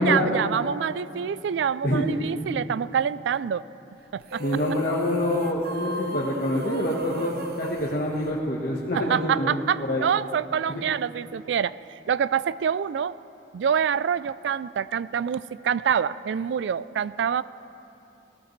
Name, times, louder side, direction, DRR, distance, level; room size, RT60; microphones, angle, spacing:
voice 1, 0.0-3.6 4.1-4.4 8.9-11.8 12.1-13.2 13.5-17.4, right 8 dB, 85° right, 18 dB, 0.3 m, -26 dB
sound 1, 4.2-8.9, equal, 60° right, 0.8 m, -34 dB
voice 2, 4.4-10.0 10.7-10.8, left 1 dB, 50° left, -5 dB, 1.3 m, -26 dB
19.0 x 18.5 x 3.2 m, 2.9 s
head